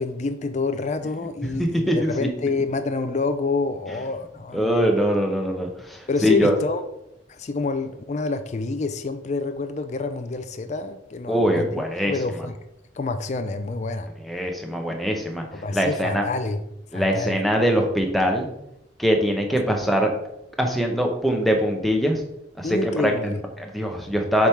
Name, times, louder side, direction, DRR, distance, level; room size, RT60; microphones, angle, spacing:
voice 1, 0.0-5.0 6.1-6.8 7.3-11.7 12.0-12.5 13.0-14.1 15.5-16.6 16.9-17.4 22.6-23.4, left 3 dB, 40° left, 8 dB, 0.4 m, -27 dB
voice 2, 1.4-2.3 4.5-6.6 11.3-12.1 14.2-16.3 16.9-18.5 19.0-20.1 20.6-22.2 22.6-24.5, equal, ahead, 2 dB, 0.8 m, -22 dB
7.1 x 3.6 x 4.6 m, 0.82 s
head